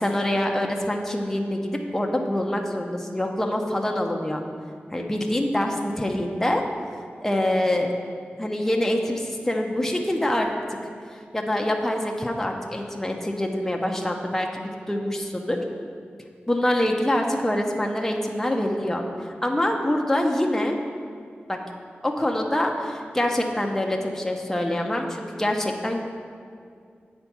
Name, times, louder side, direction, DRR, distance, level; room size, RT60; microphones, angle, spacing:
voice 1, 0.0-4.4 4.9-6.6 7.2-7.9 8.4-10.5 11.3-15.6 16.5-20.8 21.5-21.6 22.0-26.0, left 1 dB, 10° left, 1 dB, 0.6 m, -25 dB
8.3 x 4.4 x 5.9 m, 2.2 s
wide cardioid pair, 120°, 4 cm